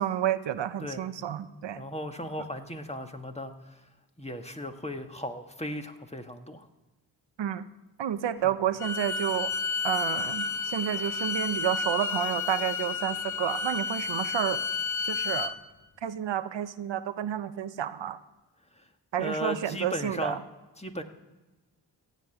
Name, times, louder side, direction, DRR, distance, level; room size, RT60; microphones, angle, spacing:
voice 1, 0.0-1.8 7.4-7.7 8.0-9.5 9.8-14.6 15.1-15.5 16.0-18.2 19.1-20.4, right 10 dB, 85° right, 12 dB, 0.7 m, -30 dB
voice 2, 1.7-3.8 4.2-6.7 8.4-8.5 18.8-18.9 19.2-20.4 20.8-21.0, equal, 15° left, 5 dB, 1.6 m, -36 dB
Bowed string instrument, 8.8-15.5, left 5 dB, 40° left, 1.0 m, -31 dB
16.0 x 5.4 x 9.0 m, 1.2 s
cardioid pair, 40°, 43 cm